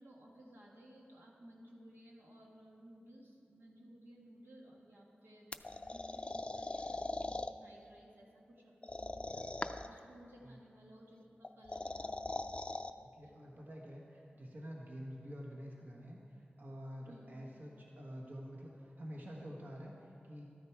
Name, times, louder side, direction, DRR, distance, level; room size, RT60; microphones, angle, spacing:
voice 1, 0.0-12.9 13.2-13.4 17.1-17.4, equal, 85° right, -3 dB, 1.8 m, -58 dB
sound 1, 5.5-7.5 8.8-10.0 11.4-12.9, left 2 dB, 30° left, 0.4 m, -41 dB
voice 2, 13.0-20.4, equal, 55° right, -2 dB, 1.4 m, -48 dB
13.0 x 9.2 x 4.7 m, 2.6 s
wide cardioid pair, 65°, 4 cm